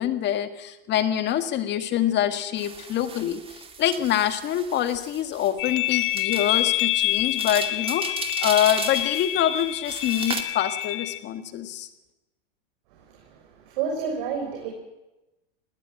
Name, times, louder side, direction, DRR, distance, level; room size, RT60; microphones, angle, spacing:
voice 1, 0.0-8.0 8.4-11.9, left 11 dB, 40° left, 10 dB, 1.7 m, -25 dB
sound 1, 2.6-10.4, right 5 dB, 20° right, 2.2 m, -37 dB
sound 2, 5.6-11.2, left 15 dB, 70° left, 1.8 m, -27 dB
voice 2, 13.1-14.7, right 6 dB, 65° right, 1 dB, 5.8 m, -30 dB
20.0 x 17.5 x 8.9 m, 1.0 s
supercardioid pair, 120°, 29 cm